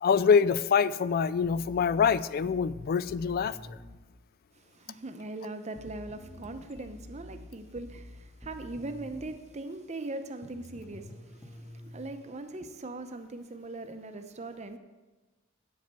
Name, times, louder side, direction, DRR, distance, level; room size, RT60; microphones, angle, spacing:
voice 1, 0.0-3.6, left 6 dB, 50° left, 17 dB, 0.3 m, -25 dB
sound 1, 1.4-4.0 5.8-9.4 10.4-12.1, left 1 dB, 10° left, 1.2 m, -48 dB
voice 2, 4.5-14.8, right 2 dB, 35° right, 8 dB, 0.7 m, -40 dB
9.0 x 5.2 x 6.9 m, 1.2 s
head